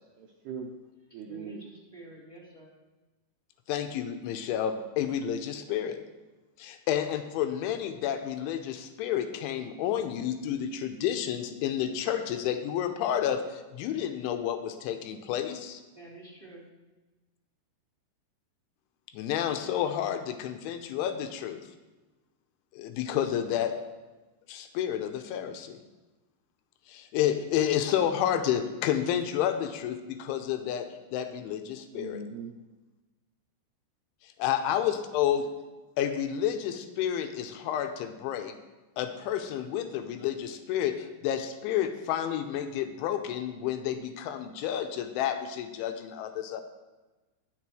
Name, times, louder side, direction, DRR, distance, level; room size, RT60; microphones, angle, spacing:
voice 1, 0.2-0.7 1.1-1.6 31.9-32.6, right 5 dB, 80° right, 1 dB, 2.3 m, -40 dB
voice 2, 1.3-2.7 15.9-16.6, right 2 dB, 10° left, -7 dB, 2.3 m, -49 dB
voice 3, 3.7-6.0 6.6-15.8 19.1-21.6 22.8-23.7 24.5-25.8 26.9-30.9 31.1-32.2 34.2-35.5 36.0-38.6 39.0-46.6, left 10 dB, 90° left, 7 dB, 3.1 m, -30 dB
20.5 x 6.8 x 3.1 m, 1.2 s
omnidirectional pair, 5.5 m